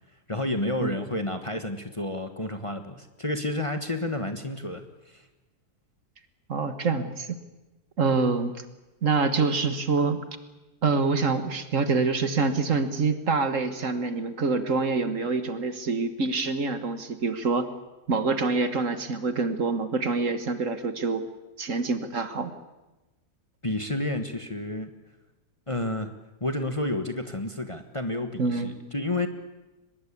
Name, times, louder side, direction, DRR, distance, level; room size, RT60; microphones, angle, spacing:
voice 1, 0.3-5.3 23.6-24.9 25.7-26.1 26.4-29.3, left 1 dB, 20° left, 7 dB, 1.4 m, -30 dB
voice 2, 6.5-7.3 8.0-8.5 9.0-10.2 10.8-17.7 18.1-21.2 21.6-22.5 28.4-28.8, right 4 dB, 55° right, 10 dB, 1.8 m, -26 dB
23.5 x 20.5 x 8.5 m, 1.1 s
omnidirectional pair, 1.7 m